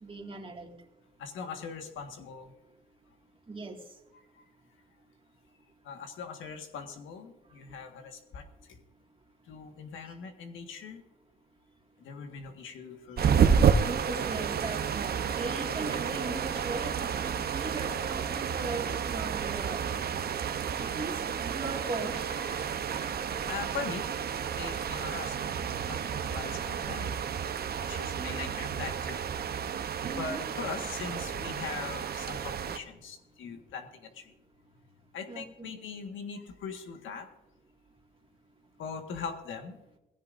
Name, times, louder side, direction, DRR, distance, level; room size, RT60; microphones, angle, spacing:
voice 1, 0.0-0.7 3.5-3.8 13.8-19.8 20.8-22.3 28.2-28.5 30.1-30.4 35.3-35.7, right 3 dB, 25° right, 3 dB, 2.2 m, -38 dB
voice 2, 1.2-2.5 5.8-8.4 8.7-8.8 9.5-11.0 12.0-13.9 14.3-14.4 22.3-27.2 27.8-29.3 30.2-34.3 35.1-37.3 38.8-39.8, left 5 dB, 75° left, 5 dB, 1.7 m, -41 dB
sound 1, 13.2-32.8, right 7 dB, 50° right, 0.9 m, -30 dB
18.0 x 16.0 x 2.6 m, 0.94 s
cardioid pair, 90°, 20 cm